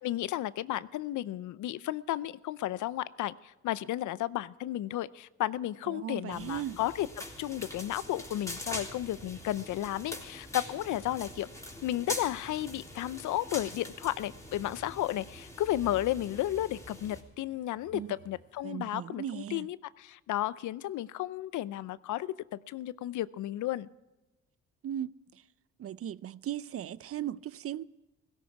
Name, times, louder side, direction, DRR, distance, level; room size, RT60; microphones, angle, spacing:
voice 1, 0.0-7.1 7.4-11.5 11.8-23.9, left 14 dB, 75° left, 0.6 m, -33 dB
voice 2, 5.9-6.8 17.9-18.1 18.6-19.7 24.8-25.4 25.8-27.8, right 10 dB, 50° right, 0.5 m, -37 dB
sound 1, 6.3-17.2, left 1 dB, 10° left, 3.6 m, -43 dB
sound 2, 8.7-18.6, right 4 dB, 25° left, 3.4 m, -59 dB
17.0 x 16.5 x 4.7 m
cardioid pair, 90°, 30 cm